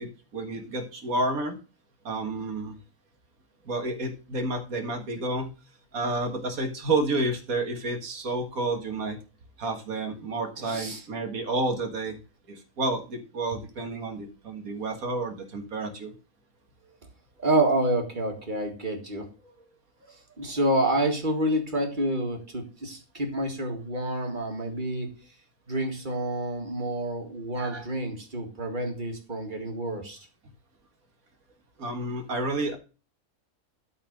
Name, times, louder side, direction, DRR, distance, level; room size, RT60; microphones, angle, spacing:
voice 1, 0.0-1.6 2.0-2.8 3.7-5.5 5.9-9.2 9.6-12.2 12.5-16.1 27.6-27.8 31.8-32.8, right 2 dB, 85° right, 4 dB, 2.1 m, -30 dB
voice 2, 10.6-11.0 17.4-19.3 20.1-25.1 25.7-30.3, right 1 dB, 35° right, 2 dB, 2.0 m, -28 dB
12.0 x 4.3 x 5.2 m, 0.33 s
omnidirectional pair, 1.4 m